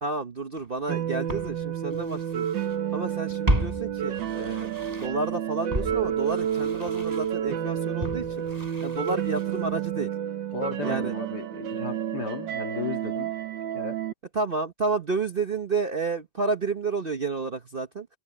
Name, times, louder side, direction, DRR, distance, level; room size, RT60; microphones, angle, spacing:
voice 1, 0.0-2.5 2.9-4.7 5.0-8.2 8.8-10.1 10.8-11.1 14.3-18.1, right 4 dB, 40° right, 0.9 m, -30 dB
Walk footsteps, 0.6-0.7 1.3-2.8 3.0-5.3 5.7-9.7 10.0-10.1, right 1 dB, 20° right, 5.7 m, -33 dB
sound 1, 0.9-14.1, right 9 dB, 85° right, 1.8 m, -30 dB
voice 2, 10.5-13.3 13.7-14.0, left 5 dB, 65° left, 2.3 m, -35 dB
omnidirectional pair, 1.9 m